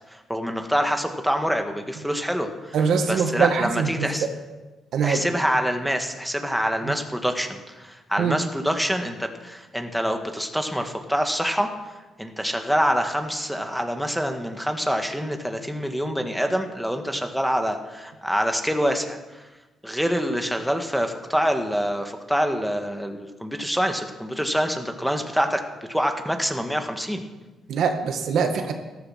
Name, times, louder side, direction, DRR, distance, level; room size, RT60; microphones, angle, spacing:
voice 1, 0.1-2.8 3.1-4.3 5.0-11.7 12.2-19.4 19.8-27.2, equal, ahead, 4 dB, 1.8 m, -26 dB
voice 2, 2.7-4.1 4.9-5.2 8.2-8.4 27.7-28.7, right 6 dB, 70° right, 5 dB, 1.9 m, -23 dB
14.0 x 14.0 x 6.0 m, 1.2 s
cardioid pair, 90°, 0 cm